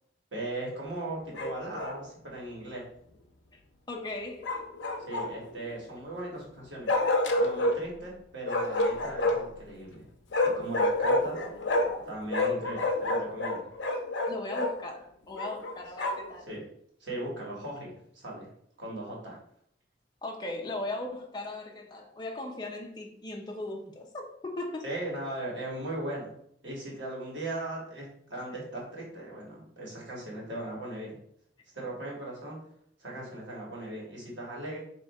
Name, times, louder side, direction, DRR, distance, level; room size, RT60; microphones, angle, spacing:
voice 1, 0.3-2.8 5.0-6.9 7.4-10.0 10.5-11.4 12.0-13.7 16.5-16.6 17.0-18.5 18.8-19.4 24.8-26.3 26.6-31.2 31.7-32.6 33.0-34.8, right 1 dB, 85° right, 1.6 m, -38 dB
Bark, 1.3-2.0 4.4-5.5 6.9-7.8 8.5-9.6 10.3-12.0 12.3-14.7 15.4-16.3, left 2 dB, 80° left, 0.6 m, -28 dB
voice 2, 3.9-4.5 14.3-16.5 20.2-24.9, left 2 dB, 25° left, 0.5 m, -38 dB
3.3 x 2.9 x 4.2 m
head